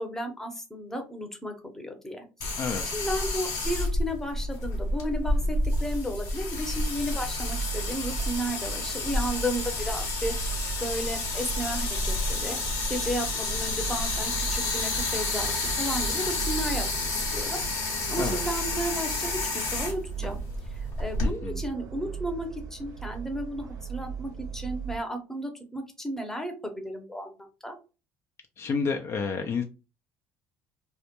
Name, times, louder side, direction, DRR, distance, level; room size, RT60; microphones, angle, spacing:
voice 1, 0.0-2.2 2.5-2.6 2.9-10.5 10.8-12.6 12.9-17.6 17.9-20.4 21.0-27.3 27.6-27.8, equal, 5° left, 4 dB, 0.7 m, -34 dB
sound 1, 2.4-21.3, left 2 dB, 70° left, 0.9 m, -30 dB
sound 2, 6.7-25.0, right 7 dB, 65° right, 0.5 m, -37 dB
voice 2, 21.2-21.5 28.6-29.6, left 5 dB, 45° left, 5 dB, 0.4 m, -29 dB
2.2 x 2.1 x 2.9 m, 0.31 s
supercardioid pair, 75°, 6 cm